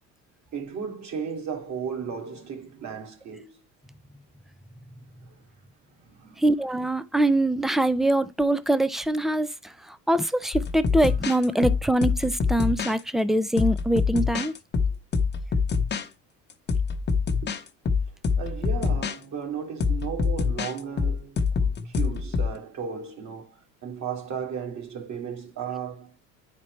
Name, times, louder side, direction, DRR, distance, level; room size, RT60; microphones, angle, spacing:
voice 1, 0.5-3.6 6.1-6.4 10.9-11.1 18.4-26.1, right 7 dB, 45° right, 2.2 m, -35 dB
voice 2, 6.4-14.5, right 1 dB, ahead, 0.3 m, -23 dB
sound 1, 10.5-13.0 13.6-16.1 16.5-19.2 19.8-22.6, left 5 dB, 25° left, 0.9 m, -25 dB
9.3 x 4.4 x 3.1 m
supercardioid pair, 90°, 40 cm